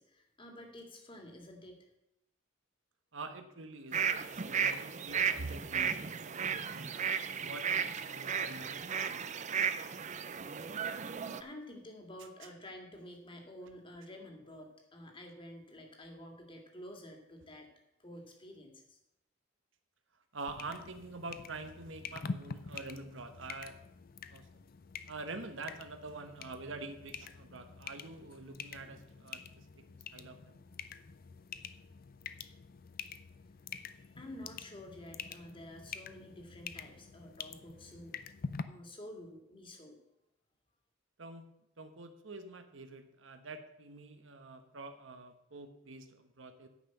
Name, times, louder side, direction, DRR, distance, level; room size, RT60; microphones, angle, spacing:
voice 1, 0.0-1.9 11.0-17.7 18.0-19.0 33.9-38.1 38.7-40.0, left 1 dB, 25° left, 2 dB, 2.1 m, -50 dB
voice 2, 3.1-9.5 20.3-23.8 24.3-24.5 25.1-30.6 41.2-41.5 41.8-46.7, right 3 dB, 70° right, 7 dB, 1.2 m, -46 dB
sound 1, 3.9-11.4, right 7 dB, 35° right, 0.6 m, -34 dB
sound 2, 20.5-38.6, left 5 dB, 45° left, 0.5 m, -46 dB
9.8 x 5.7 x 7.9 m, 0.86 s
head